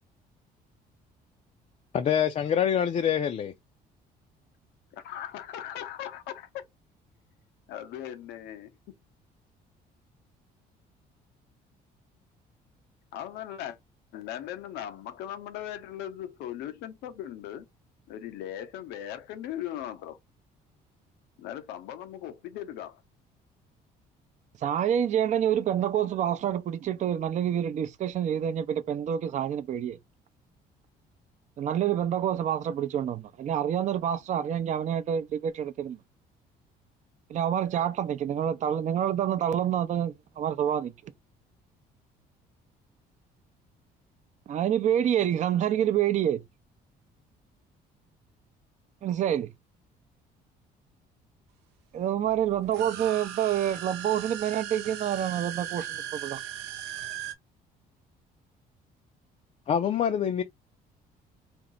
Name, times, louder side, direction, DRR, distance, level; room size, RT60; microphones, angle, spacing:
voice 1, 1.9-3.5 59.7-60.4, left 8 dB, 40° left, 0.5 m, -25 dB
voice 2, 4.9-6.6 7.7-8.7 13.1-13.8 14.1-17.7 18.1-20.2 21.4-23.0, left 11 dB, 90° left, 0.8 m, -38 dB
voice 3, 24.6-30.0 31.6-36.0 37.3-40.9 44.5-46.4 49.0-49.5 51.9-56.4, right 10 dB, 45° right, 0.5 m, -27 dB
sound 1, 52.6-57.3, right 10 dB, 90° right, 0.9 m, -38 dB
4.4 x 2.0 x 3.7 m
cardioid pair, 110°, 17 cm